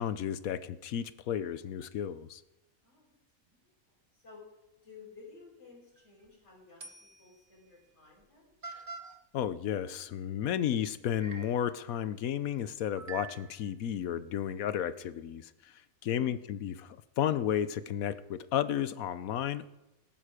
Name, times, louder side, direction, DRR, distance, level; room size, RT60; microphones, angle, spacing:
voice 1, 0.0-2.4 9.3-15.7 16.0-19.7, left 10 dB, 75° left, 14 dB, 1.2 m, -33 dB
voice 2, 2.8-3.6 3.9-4.4 4.8-8.5 16.0-16.5, left 4 dB, 50° left, -5 dB, 5.6 m, -55 dB
sound 1, 6.0-6.3 6.8-7.4 8.2-8.3 8.6-9.2 10.6-10.7 11.2-11.7 13.0-13.7, right 5 dB, 40° right, 1.4 m, -45 dB
18.5 x 11.5 x 5.1 m, 0.96 s
omnidirectional pair, 1.5 m